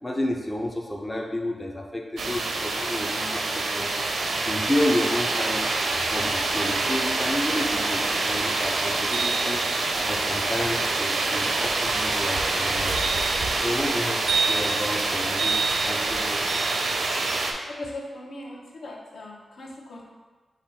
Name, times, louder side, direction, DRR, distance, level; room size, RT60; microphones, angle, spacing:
voice 1, 0.0-3.9 4.4-5.7 6.1-9.7 10.1-13.1 13.5-16.5, left 1 dB, 15° left, 0 dB, 0.4 m, -31 dB
sound 1, 2.2-17.5, right 3 dB, 70° right, 0.5 m, -25 dB
voice 2, 17.8-20.0, left 1 dB, 75° left, -2 dB, 0.8 m, -39 dB
5.2 x 2.2 x 4.1 m, 1.3 s
wide cardioid pair, 135°, 0 cm